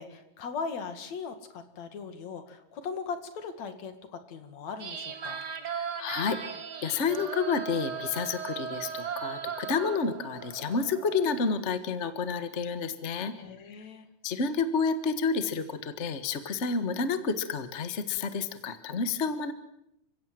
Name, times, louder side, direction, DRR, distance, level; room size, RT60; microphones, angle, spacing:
voice 1, 0.0-5.4 13.3-14.1, left 5 dB, 65° left, 8 dB, 3.3 m, -39 dB
sound 1, 4.8-11.6, right 7 dB, 40° right, 1.7 m, -38 dB
voice 2, 5.8-13.3 14.2-19.5, left 5 dB, 35° left, 10 dB, 1.2 m, -30 dB
30.0 x 16.5 x 7.7 m, 0.80 s
omnidirectional pair, 3.4 m